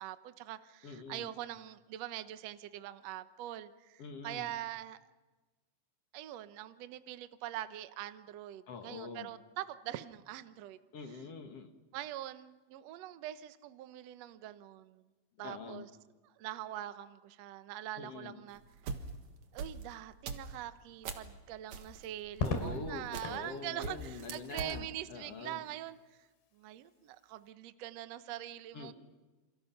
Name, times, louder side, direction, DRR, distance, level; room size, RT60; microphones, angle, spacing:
voice 1, 0.0-5.0 6.1-10.8 11.9-15.0 15.4-15.9 16.4-18.6 19.5-26.2 26.5-28.9, right 13 dB, 80° right, 11 dB, 1.5 m, -43 dB
voice 2, 0.8-1.3 4.0-4.5 8.7-9.3 10.9-11.7 15.4-15.9 18.0-18.4 22.4-25.6 28.7-28.9, left 4 dB, 50° left, 5 dB, 2.2 m, -44 dB
sound 1, 18.5-21.3 21.7-23.5 23.8-24.8, right 5 dB, 55° right, 2.6 m, -43 dB
Crackle, 22.3-23.5 25.1-25.6, left 4 dB, 85° left, 4.7 m, -37 dB
28.5 x 27.5 x 5.9 m, 1.2 s
omnidirectional pair, 4.4 m